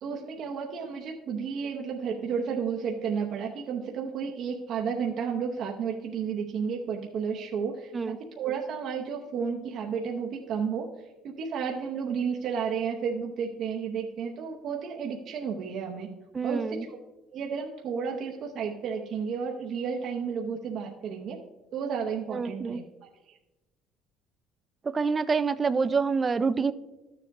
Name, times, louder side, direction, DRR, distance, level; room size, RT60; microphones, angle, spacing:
voice 1, 0.0-10.9 11.2-16.1 16.4-17.0 17.3-21.4 21.7-22.8, right 6 dB, 45° right, 0 dB, 0.8 m, -32 dB
voice 2, 16.3-16.9 22.3-22.8 24.8-26.7, right 5 dB, 20° right, 14 dB, 0.3 m, -27 dB
13.0 x 7.1 x 3.5 m, 1.1 s
cardioid pair, 165°, 0 cm